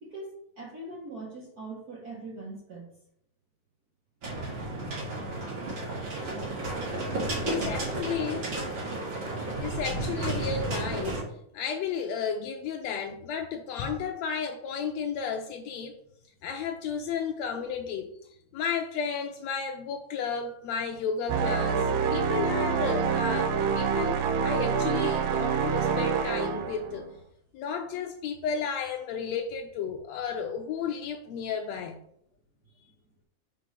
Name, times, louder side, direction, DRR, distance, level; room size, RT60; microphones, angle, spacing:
voice 1, 0.0-2.9 7.1-7.8 32.6-32.9, right 2 dB, 65° right, 0.9 m, -42 dB
sound 1, 4.2-11.2, right 2 dB, 40° right, 2.5 m, -32 dB
voice 2, 4.6-5.4 7.4-8.5 9.6-11.2 11.5-15.9 16.4-18.1 18.5-27.1 27.5-32.0, left 6 dB, 85° left, 1.5 m, -33 dB
sound 2, 21.3-27.1, right 6 dB, 80° right, 2.2 m, -27 dB
5.0 x 4.5 x 5.7 m
omnidirectional pair, 3.7 m